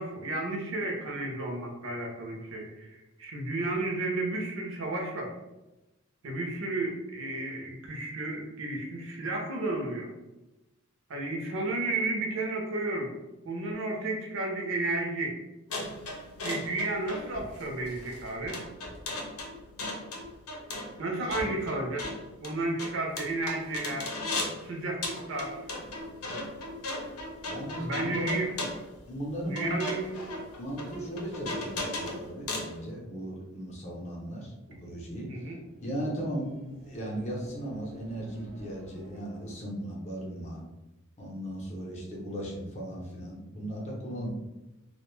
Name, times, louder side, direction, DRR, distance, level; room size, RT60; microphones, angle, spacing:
voice 1, 0.0-5.3 6.2-10.1 11.1-13.1 13.4-15.4 16.4-18.6 21.0-22.1 22.4-24.1 24.6-25.6 27.8-28.5 29.5-30.1 35.3-35.6, right 2 dB, 60° right, 1 dB, 0.5 m, -32 dB
sound 1, 15.7-24.6 25.0-32.7, left 2 dB, 90° left, 0.7 m, -37 dB
voice 2, 21.2-21.5 27.4-28.4 29.1-30.1 30.6-35.3 35.8-36.6 36.8-40.6 41.2-44.3, right 1 dB, 30° left, -3 dB, 0.6 m, -37 dB
sound 2, 35.3-39.9, equal, 85° right, 0.9 m, -51 dB
2.4 x 2.1 x 3.0 m, 1.0 s
head